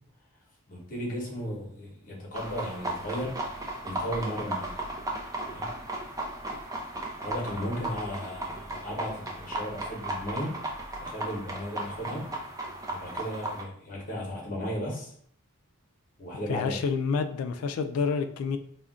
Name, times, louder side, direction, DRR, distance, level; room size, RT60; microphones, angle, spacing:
voice 1, 0.7-3.4 3.8-4.7 5.4-5.7 7.2-10.6 11.0-12.3 12.9-15.1 16.2-16.8, equal, 40° left, -2 dB, 0.8 m, -35 dB
sound 1, 2.3-13.6, right 2 dB, 15° right, 0.3 m, -36 dB
voice 2, 16.5-18.6, left 5 dB, 90° left, 13 dB, 0.3 m, -28 dB
2.4 x 2.1 x 3.6 m, 0.62 s
head